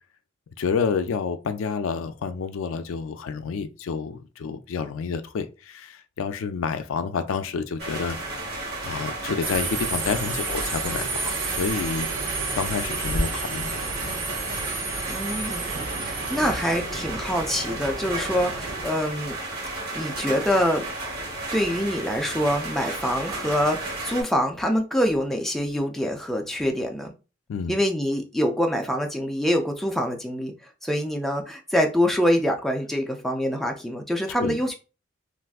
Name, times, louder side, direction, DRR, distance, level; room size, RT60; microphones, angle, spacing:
voice 1, 0.6-8.2 8.8-12.1 12.5-14.2 27.5-27.8 34.4-34.6, left 5 dB, 80° left, 0.4 m, -29 dB
sound 1, 7.8-24.2, right 2 dB, 50° right, 1.2 m, -33 dB
Subway metro underground, 9.4-18.9, right 3 dB, 65° right, 0.8 m, -31 dB
voice 2, 15.1-19.3 19.9-20.8 21.5-27.1 27.7-30.5 30.8-34.7, equal, ahead, 0.4 m, -25 dB
3.4 x 2.5 x 2.3 m
head